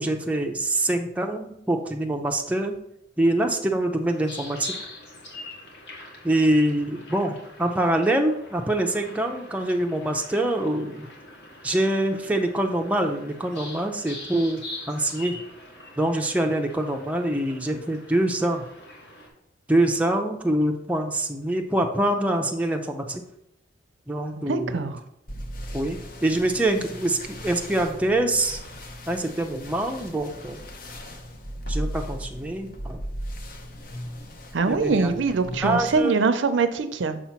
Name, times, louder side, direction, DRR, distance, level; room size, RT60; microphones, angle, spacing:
voice 1, 0.0-2.8 3.2-4.7 6.2-11.1 11.6-14.6 14.9-15.4 16.0-18.6 19.7-23.2 24.1-24.8 25.7-28.6 29.1-30.6 31.7-33.0 34.6-35.1 35.6-36.2, right 1 dB, 10° right, 3 dB, 0.5 m, -25 dB
sound 1, 4.1-19.3, left 2 dB, 65° left, 1.6 m, -43 dB
voice 2, 24.4-25.0 34.5-37.2, right 4 dB, 90° right, 10 dB, 0.5 m, -23 dB
sound 2, 25.3-36.0, equal, 50° left, 0.7 m, -37 dB
6.6 x 2.9 x 5.7 m, 0.80 s
head